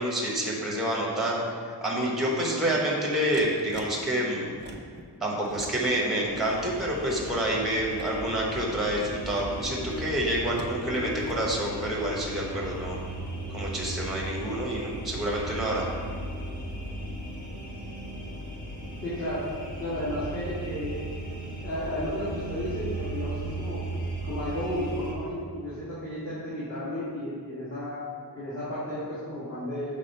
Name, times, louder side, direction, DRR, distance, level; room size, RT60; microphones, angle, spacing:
voice 1, 0.0-4.5 5.2-13.0 13.5-15.9, right 1 dB, ahead, -3 dB, 1.0 m, -28 dB
sound 1, 3.3-3.9 4.5-5.0 5.4-6.1 6.4-8.1 9.1-10.8 11.1-11.4, right 3 dB, 25° right, 0.5 m, -45 dB
sound 2, 6.3-25.1, right 1 dB, 20° left, 1.3 m, -37 dB
voice 2, 19.0-19.4 19.8-21.0 21.4-23.8 24.2-28.0 28.3-30.0, left 1 dB, 35° left, -12 dB, 1.6 m, -33 dB
6.3 x 3.6 x 5.3 m, 2.2 s
wide cardioid pair, 180°, 41 cm